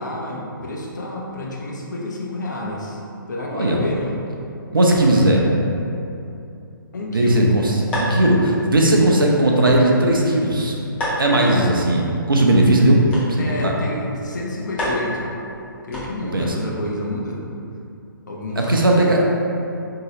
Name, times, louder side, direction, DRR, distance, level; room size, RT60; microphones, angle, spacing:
voice 1, 0.0-3.0 3.3-4.1 6.9-7.5 11.3-11.5 13.4-15.3 15.9-17.4 18.3-18.9, left 1 dB, 55° left, -3 dB, 0.6 m, -29 dB
voice 2, 4.7-5.5 7.1-10.8 11.2-13.0 13.3-13.7 16.3-16.5 18.6-19.2, right 1 dB, 70° right, -1 dB, 0.5 m, -17 dB
sound 1, 7.9-16.5, equal, 10° left, 0.5 m, -32 dB
3.0 x 2.8 x 2.8 m, 2.7 s
figure-of-eight pair, 135°, 12 cm